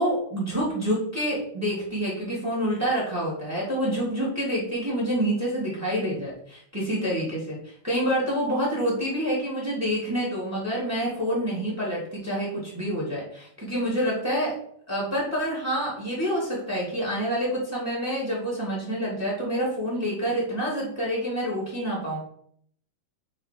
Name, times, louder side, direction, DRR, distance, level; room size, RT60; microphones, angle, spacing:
voice 1, 0.0-14.5 14.9-22.2, equal, 5° right, -4 dB, 1.1 m, -27 dB
8.7 x 4.1 x 4.5 m, 0.65 s
omnidirectional pair, 5.8 m